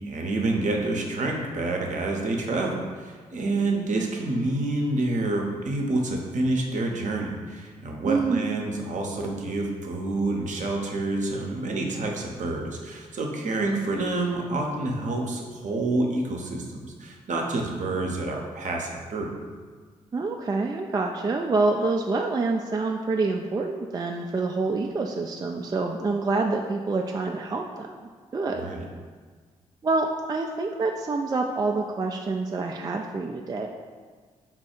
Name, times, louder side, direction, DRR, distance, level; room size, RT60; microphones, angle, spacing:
voice 1, 0.0-19.3 28.5-28.8, right 2 dB, 50° right, 1 dB, 0.7 m, -28 dB
voice 2, 8.0-8.4 20.1-27.9 28.3-28.7 29.8-33.7, right 3 dB, 25° right, 2 dB, 0.3 m, -27 dB
3.7 x 2.3 x 4.3 m, 1.5 s
hypercardioid pair, 40°, 16 cm